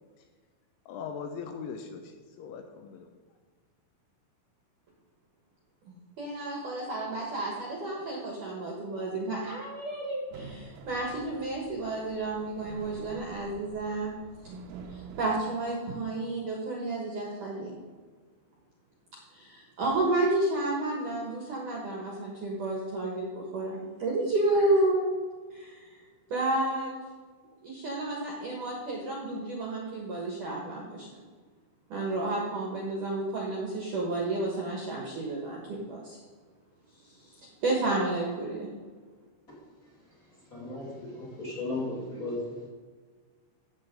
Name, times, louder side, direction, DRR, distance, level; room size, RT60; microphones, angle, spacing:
voice 1, 0.9-3.1, left 6 dB, 85° left, 5 dB, 2.9 m, -40 dB
voice 2, 5.9-14.1 14.9-17.7 19.3-25.0 25.5-26.0 26.3-26.9 27.6-31.2 31.9-36.2 37.0-38.7, right 2 dB, 65° right, -3 dB, 2.1 m, -31 dB
sound 1, 10.3-15.3, right 5 dB, 90° right, 3.5 m, -47 dB
voice 3, 40.5-42.7, left 2 dB, 30° left, -5 dB, 1.6 m, -35 dB
15.5 x 7.5 x 3.8 m, 1.5 s
omnidirectional pair, 5.8 m